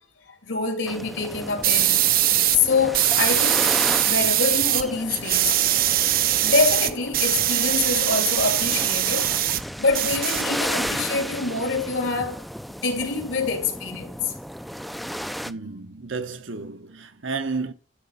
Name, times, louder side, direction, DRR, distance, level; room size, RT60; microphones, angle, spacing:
voice 1, 0.3-2.1 2.5-3.8 4.0-5.7 6.4-9.4 9.8-12.4 12.7-14.3, left 4 dB, 80° left, 2.6 m, -25 dB
sound 1, 0.9-15.5, equal, ahead, 0.4 m, -33 dB
sound 2, 1.6-2.6 2.9-4.8 5.1-9.6 9.9-10.9, right 13 dB, 50° right, 0.6 m, -22 dB
voice 2, 15.5-17.7, right 4 dB, 80° right, 1.2 m, -32 dB
12.0 x 4.1 x 7.0 m
head